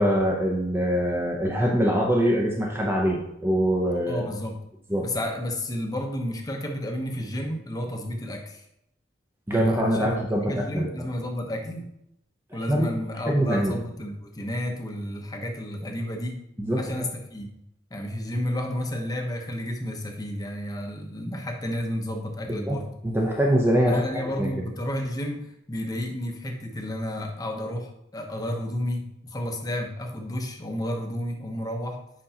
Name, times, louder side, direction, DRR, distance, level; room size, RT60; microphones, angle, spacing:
voice 1, 0.0-4.3 4.9-5.1 9.5-10.9 12.5-12.9 13.3-13.8 16.6-17.1 22.5-22.8 23.0-24.5, equal, 15° right, -1 dB, 0.7 m, -24 dB
voice 2, 4.1-4.6 5.0-8.6 9.5-11.9 12.5-16.4 16.8-17.6 17.9-23.0 23.8-32.0, left 1 dB, 20° left, 2 dB, 0.9 m, -31 dB
7.9 x 5.3 x 2.9 m, 0.79 s
head